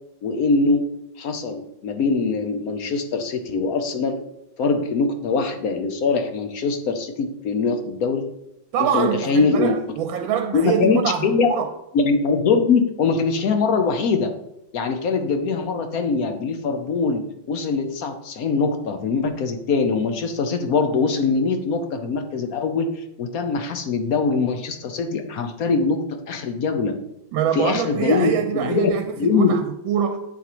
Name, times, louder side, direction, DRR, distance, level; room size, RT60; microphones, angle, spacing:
voice 1, 0.2-0.9 1.2-4.2 4.6-8.2 8.8-9.8 10.5-11.5 11.9-14.3 14.7-17.2 17.5-26.9 27.5-28.9 29.2-29.5, left 4 dB, 65° left, 1.0 m, -22 dB
voice 2, 8.7-11.7 27.3-30.2, right 8 dB, 90° right, 1.4 m, -24 dB
8.4 x 7.1 x 3.0 m
omnidirectional pair, 2.1 m